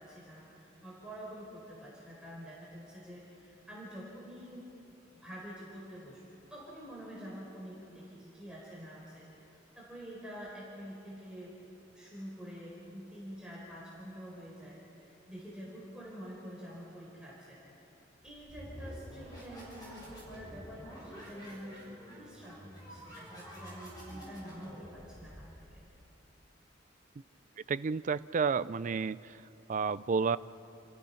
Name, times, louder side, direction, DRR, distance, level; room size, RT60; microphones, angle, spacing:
voice 1, 0.0-4.7 5.1-6.2 6.5-11.5 11.9-17.9 18.2-25.8, equal, 5° right, -7 dB, 4.4 m, -47 dB
sound 1, 18.2-25.9, equal, 20° left, 6.6 m, -49 dB
voice 2, 27.7-29.2 29.7-30.4, right 5 dB, 40° right, 17 dB, 0.4 m, -30 dB
30.0 x 15.0 x 5.8 m, 2.8 s
head